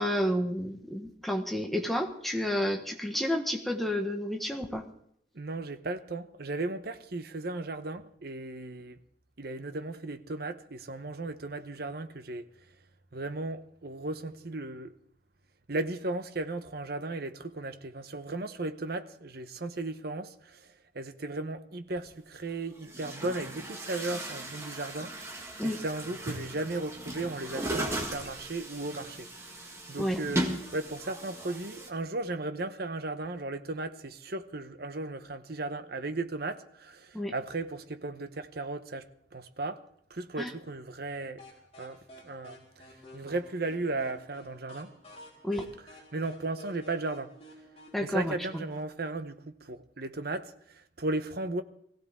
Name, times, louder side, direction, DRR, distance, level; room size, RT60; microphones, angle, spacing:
voice 1, 0.0-4.8 25.6-25.8 30.0-30.2 37.1-37.3 40.4-40.5 45.4-45.7 47.9-48.6, equal, ahead, 1.4 m, -30 dB
voice 2, 5.3-9.0 9.4-12.5 13.1-14.9 15.7-30.5 30.7-39.1 39.3-39.8 40.1-41.4 41.8-42.9 43.1-44.9 45.8-47.3 48.0-51.6, right 2 dB, 55° right, 0.9 m, -36 dB
Chatter / Gurgling / Tap, 22.0-22.1 22.8-31.9, right 1 dB, 15° right, 1.9 m, -37 dB
sound 1, 41.4-48.9, equal, 30° left, 4.1 m, -52 dB
20.5 x 16.0 x 3.7 m
head